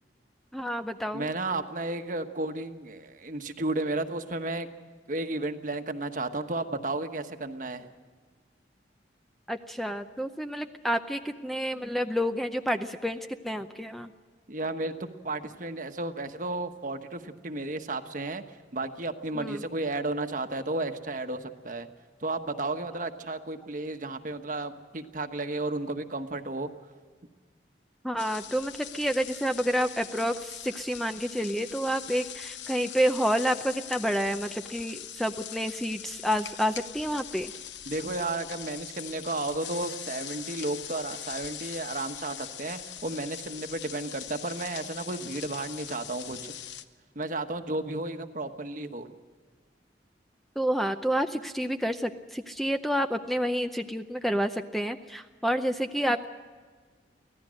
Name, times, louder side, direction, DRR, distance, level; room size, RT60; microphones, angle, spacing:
voice 1, 0.5-1.3 9.5-14.1 19.3-19.6 28.0-37.5 50.6-56.3, equal, ahead, 7 dB, 0.6 m, -29 dB
voice 2, 1.1-4.7 5.1-7.9 14.5-14.9 15.2-18.4 18.7-21.9 22.2-26.7 37.9-46.5 47.1-49.2, right 2 dB, 45° right, 7 dB, 1.2 m, -33 dB
sound 1, 28.2-46.8, left 10 dB, 85° left, 0.9 m, -42 dB
24.5 x 17.0 x 6.4 m, 1.5 s
head